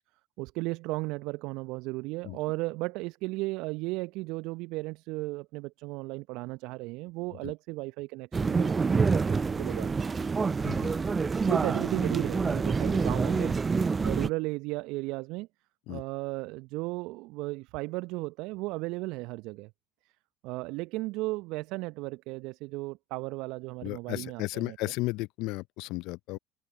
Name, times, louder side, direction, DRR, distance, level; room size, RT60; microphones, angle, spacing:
voice 1, 0.4-10.2 11.5-15.5 15.9-19.7 20.4-24.9, right 23 dB, 65° right, 0.9 m, -35 dB
sound 1, 8.3-14.3, right 4 dB, 25° right, 0.6 m, -27 dB
voice 2, 23.8-26.4, left 22 dB, 65° left, 0.7 m, -34 dB
figure-of-eight pair, 60°, 0 cm